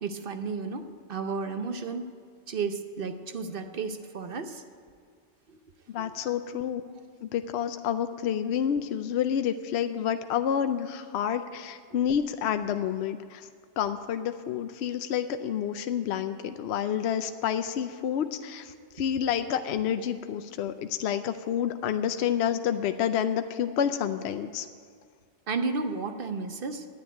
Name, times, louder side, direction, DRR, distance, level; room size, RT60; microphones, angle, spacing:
voice 1, 0.0-2.1 2.5-4.6 5.5-5.6 6.0-6.7 11.9-12.0 25.5-26.9, right 4 dB, 55° right, 8 dB, 0.9 m, -33 dB
voice 2, 5.9-6.8 7.2-13.5 13.8-24.7, left 9 dB, 70° left, 9 dB, 0.8 m, -29 dB
10.5 x 8.9 x 9.4 m, 2.1 s
omnidirectional pair, 1.2 m